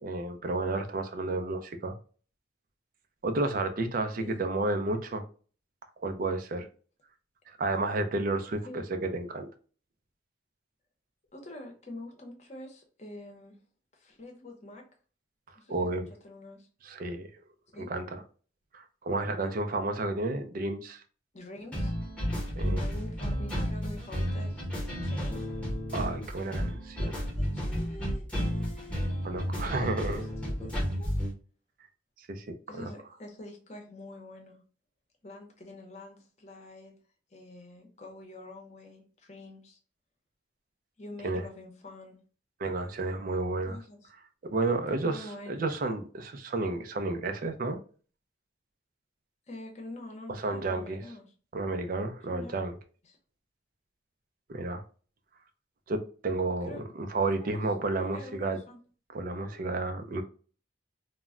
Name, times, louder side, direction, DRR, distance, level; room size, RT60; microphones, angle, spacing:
voice 1, 0.0-1.9 3.2-5.2 6.0-6.7 7.5-9.5 15.7-16.1 16.8-17.3 17.9-18.2 18.7-21.0 22.6-22.8 25.9-27.1 29.2-30.2 32.3-32.9 41.2-41.4 42.6-43.8 44.4-47.8 50.4-51.0 51.5-52.8 54.5-54.8 55.9-58.6 59.1-60.2, right 2 dB, 50° right, 0.4 m, -31 dB
voice 2, 11.3-13.6 13.9-14.8 15.5-15.9 16.2-16.7 17.7-17.9 21.3-22.0 22.8-25.4 27.0-31.1 32.7-34.6 35.2-36.9 37.3-39.8 41.0-42.2 43.7-44.1 45.0-45.7 49.5-51.2 52.3-52.5 53.0-53.2 56.6-56.8 57.4-57.6 58.0-58.8, left 1 dB, 40° left, 0.7 m, -46 dB
sound 1, 21.7-31.3, equal, 5° left, 0.8 m, -32 dB
2.2 x 2.0 x 3.6 m
head